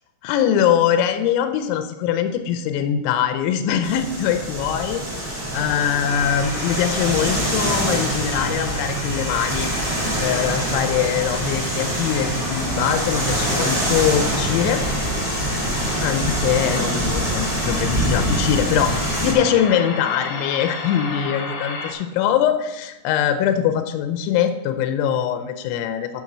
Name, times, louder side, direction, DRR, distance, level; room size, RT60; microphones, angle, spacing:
voice 1, 0.2-9.7 10.2-14.8 16.0-26.2, left 9 dB, 85° left, 7 dB, 3.0 m, -22 dB
sound 1, 3.8-19.3, right 1 dB, 15° right, 1.4 m, -25 dB
sound 2, 6.1-21.9, left 3 dB, 70° left, 1.8 m, -32 dB
7.1 x 6.2 x 7.3 m, 1.0 s
omnidirectional pair, 5.3 m